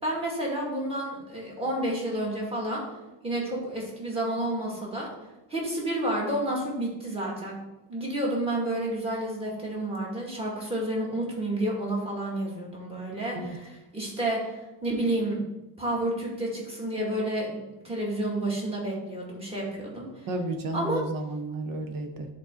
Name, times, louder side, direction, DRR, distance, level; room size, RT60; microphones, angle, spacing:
voice 1, 0.0-2.8 3.2-5.1 5.5-7.6 7.9-15.4 15.8-17.6 17.8-20.3 20.7-21.1, right 1 dB, 15° right, -4 dB, 2.2 m, -30 dB
voice 2, 20.3-22.3, right 2 dB, 50° right, 5 dB, 1.2 m, -32 dB
10.5 x 4.3 x 3.8 m, 1.0 s
cardioid pair, 150°, 42 cm